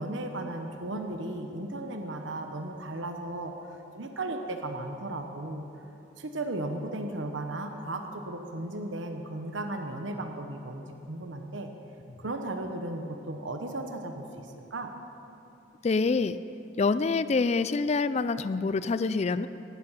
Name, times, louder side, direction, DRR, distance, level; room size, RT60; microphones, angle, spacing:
voice 1, 0.0-5.7 6.2-11.7 12.2-14.9, right 2 dB, 85° right, 5 dB, 1.1 m, -35 dB
voice 2, 15.8-16.4 16.8-19.5, left 4 dB, 35° left, 13 dB, 0.4 m, -26 dB
18.0 x 13.0 x 5.7 m, 2.8 s
head